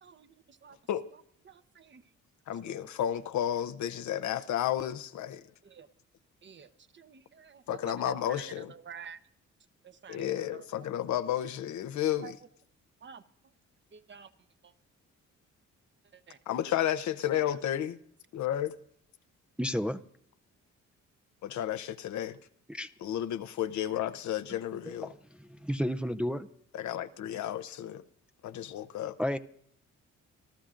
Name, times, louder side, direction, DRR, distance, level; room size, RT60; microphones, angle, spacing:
voice 1, 0.0-0.8 1.1-2.1 2.6-2.8 5.6-5.9 6.4-9.2 9.8-10.9 12.2-12.3 13.0-13.2 13.9-14.3 14.6-14.7 16.1-16.4 17.3-17.5, right 7 dB, 40° right, 0.9 m, -50 dB
voice 2, 2.5-5.4 7.7-8.7 10.1-12.3 16.5-18.0 18.3-18.8 21.4-22.4 23.0-25.1 26.7-28.0 28.4-29.2, left 11 dB, 70° left, 0.8 m, -32 dB
voice 3, 19.6-20.0 22.7-22.9 25.0-25.1 25.5-26.5 29.2-29.4, equal, 5° right, 0.5 m, -31 dB
27.0 x 13.0 x 2.5 m
cardioid pair, 90°, 30 cm